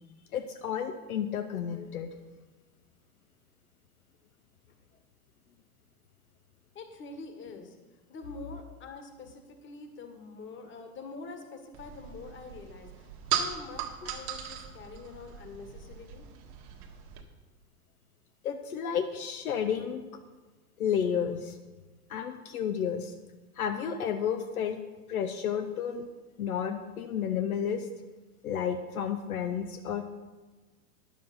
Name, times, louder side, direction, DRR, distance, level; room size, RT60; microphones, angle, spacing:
voice 1, 0.3-2.1 18.4-20.0 20.8-21.6 22.1-23.1 23.6-24.8 25.1-26.1 26.4-27.9 28.4-30.0, left 8 dB, 65° left, 6 dB, 0.9 m, -31 dB
voice 2, 6.7-7.8 8.1-16.2, left 3 dB, 25° left, 6 dB, 1.6 m, -45 dB
sound 1, 11.7-17.2, right 9 dB, 45° right, 1.5 m, -38 dB
10.5 x 7.5 x 5.5 m, 1.3 s
figure-of-eight pair, 90°, 46 cm